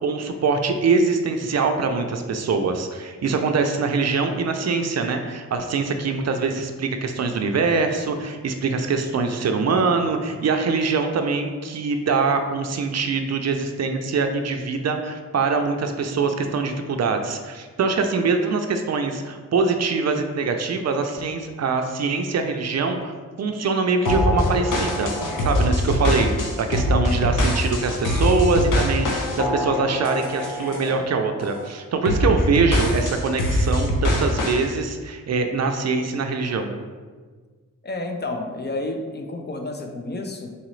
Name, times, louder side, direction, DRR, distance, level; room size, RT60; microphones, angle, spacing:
voice 1, 0.0-25.1 25.4-36.7, right 4 dB, 55° right, 6 dB, 0.5 m, -23 dB
sound 1, 24.1-31.0 31.4-31.7 32.1-34.6, left 1 dB, 85° left, 0.8 m, -23 dB
voice 2, 37.8-40.6, left 2 dB, 35° left, 4 dB, 0.5 m, -30 dB
4.1 x 3.8 x 3.1 m, 1.5 s
wide cardioid pair, 105°, 31 cm